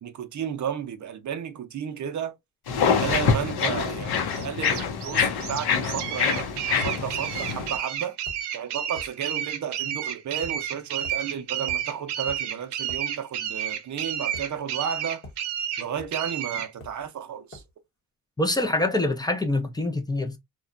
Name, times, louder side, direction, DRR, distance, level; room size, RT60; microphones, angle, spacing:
voice 1, 0.0-2.4 3.0-6.5 6.8-8.2 8.5-15.2 15.8-17.6, right 8 dB, 50° right, 0.5 m, -33 dB
sound 1, 2.7-7.8, left 6 dB, 70° left, 0.7 m, -25 dB
sound 2, 4.3-16.7, right 10 dB, 90° right, 0.6 m, -31 dB
sound 3, 7.6-7.8 8.3-8.5 9.0-9.2 10.4-10.6 11.0-11.2 11.7-11.9 12.3-12.4 12.9-13.0 14.3-14.9 15.2-15.4 16.0-16.2 16.8-17.1 17.5-17.7, left 1 dB, 35° left, 1.0 m, -44 dB
voice 2, 18.4-20.4, left 2 dB, 10° left, 0.4 m, -25 dB
2.9 x 2.2 x 2.4 m
cardioid pair, 120°, 39 cm